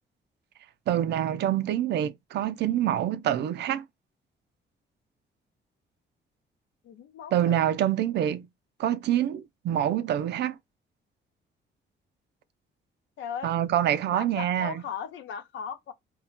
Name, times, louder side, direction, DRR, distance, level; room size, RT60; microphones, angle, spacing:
voice 1, 0.9-3.8 7.3-8.5 8.8-10.6 13.4-14.8, right 11 dB, 65° right, 0.4 m, -26 dB
voice 2, 6.8-7.6 13.2-13.6 14.1-15.9, left 8 dB, 75° left, 0.6 m, -37 dB
2.2 x 2.1 x 3.7 m
cardioid pair, 165°, 20 cm